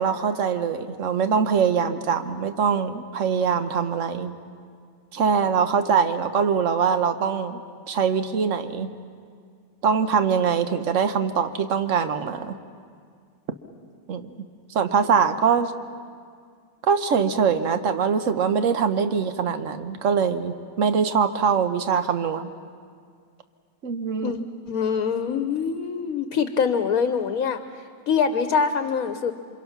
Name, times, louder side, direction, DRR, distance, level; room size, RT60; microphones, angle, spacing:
voice 1, 0.0-4.3 5.1-7.6 7.9-8.9 9.8-12.6 14.1-14.3 14.7-15.7 16.9-22.5 23.8-24.3, right 6 dB, 60° right, 9 dB, 1.3 m, -23 dB
voice 2, 24.7-27.6 28.1-29.3, left 6 dB, 75° left, 9 dB, 1.3 m, -24 dB
27.5 x 25.0 x 5.9 m, 2.1 s
omnidirectional pair, 1.5 m